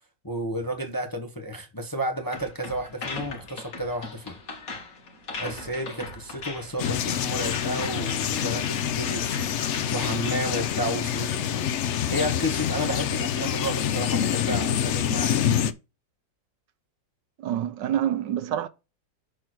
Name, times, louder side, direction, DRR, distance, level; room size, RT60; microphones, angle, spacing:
voice 1, 0.2-4.4 5.4-11.7 12.1-15.4, equal, 15° left, 0.9 m, -32 dB
sound 1, 2.3-10.8, left 3 dB, 50° left, 2.2 m, -38 dB
sound 2, 6.8-15.7, left 9 dB, 70° left, 0.6 m, -26 dB
voice 2, 17.4-18.7, right 10 dB, 75° right, 1.4 m, -27 dB
6.7 x 4.4 x 6.1 m
omnidirectional pair, 2.0 m